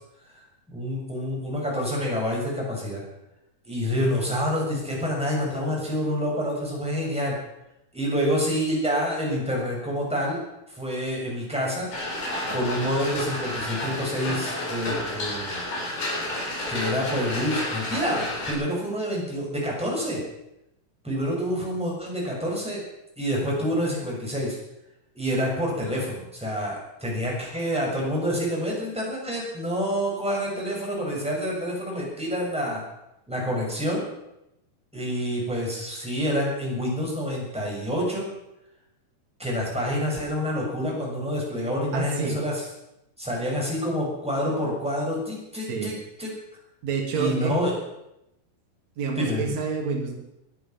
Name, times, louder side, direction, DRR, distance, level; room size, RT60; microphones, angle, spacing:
voice 1, 0.4-3.0 3.7-7.4 7.9-11.9 12.5-15.7 16.7-20.2 21.0-22.8 23.2-24.6 25.1-32.8 33.3-34.0 34.9-38.3 39.4-42.6 43.2-46.4 47.1-47.7 49.1-49.5, equal, ahead, -3 dB, 6.1 m, -27 dB
sound 1, 11.9-18.5, left 1 dB, 65° left, 5.9 m, -31 dB
voice 2, 41.9-42.4 45.7-45.9 46.8-47.6 49.0-50.1, right 5 dB, 55° right, 0 dB, 3.5 m, -28 dB
20.5 x 11.5 x 5.9 m, 0.87 s
omnidirectional pair, 4.0 m